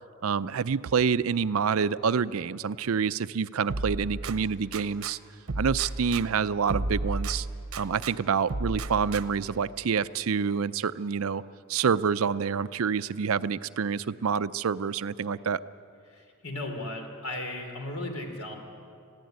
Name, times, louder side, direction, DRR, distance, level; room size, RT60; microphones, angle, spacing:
voice 1, 0.2-5.2 5.6-7.5 7.8-11.4 11.7-15.6, right 6 dB, 70° right, 15 dB, 0.5 m, -27 dB
sound 1, 3.7-5.1 5.5-8.1 8.5-9.5, right 2 dB, 90° right, 0.9 m, -33 dB
voice 2, 16.1-18.5, left 1 dB, 80° left, 3 dB, 3.5 m, -36 dB
21.0 x 15.5 x 9.4 m, 2.5 s
head